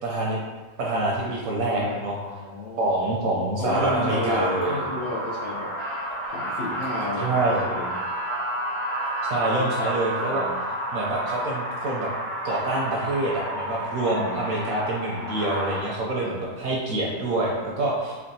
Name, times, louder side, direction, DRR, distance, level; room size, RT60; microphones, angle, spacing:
voice 1, 0.0-0.4 0.8-2.2 2.8-4.8 7.2-7.6 9.2-10.5 10.9-12.1 12.4-18.2, right 2 dB, 70° right, -3 dB, 0.8 m, -26 dB
voice 2, 1.7-2.0 2.3-3.0 3.6-5.7 6.3-8.0 10.3-10.6 14.1-14.5 16.2-16.4, left 1 dB, 70° left, -5 dB, 0.8 m, -32 dB
sound 1, 2.2-2.3 2.8-2.9 3.8-4.8 6.1-7.1 8.3-8.6 9.0-9.3 9.6-9.9 10.2-10.3, equal, 35° left, 1.2 m, -46 dB
sound 2, 3.6-15.8, right 1 dB, 90° left, 1.9 m, -30 dB
4.5 x 2.3 x 2.6 m, 1.4 s
omnidirectional pair, 1.8 m